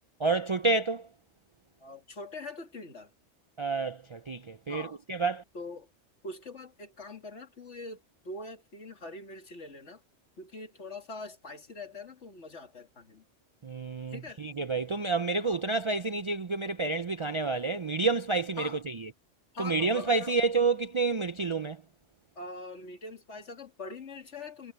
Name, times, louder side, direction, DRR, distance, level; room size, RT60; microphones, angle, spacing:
voice 1, 0.2-1.1 3.6-5.4 13.6-19.1 19.6-21.8, right 3 dB, 45° right, 0.4 m, -29 dB
voice 2, 1.8-3.1 4.7-5.0 5.5-5.9 6.2-10.0 10.4-13.2 14.1-14.4 15.4-15.6 18.6-18.8 19.5-20.4 22.4-24.7, left 2 dB, 75° left, 2.6 m, -43 dB
omnidirectional pair, 1.2 m